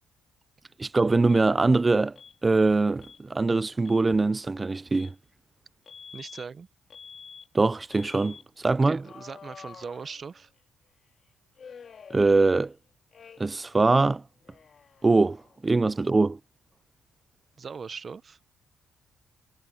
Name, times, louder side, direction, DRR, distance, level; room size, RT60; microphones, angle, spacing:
voice 1, 0.8-2.1 2.4-5.1 7.5-9.0 12.1-12.7 13.4-14.2 15.0-16.4, right 3 dB, 25° right, 0.3 m, -23 dB
Alarm, 1.3-1.5 2.2-2.4 3.0-3.2 3.7-4.1 4.9-5.2 5.9-6.5 6.9-7.5 7.9-8.4 9.0-10.6 11.6-12.8 13.1-13.7 13.9-15.6, left 6 dB, 50° left, 2.4 m, -48 dB
voice 2, 6.1-6.7 8.8-10.5 17.6-18.4, right 5 dB, 40° right, 0.7 m, -40 dB
cardioid pair, 90°, 0 cm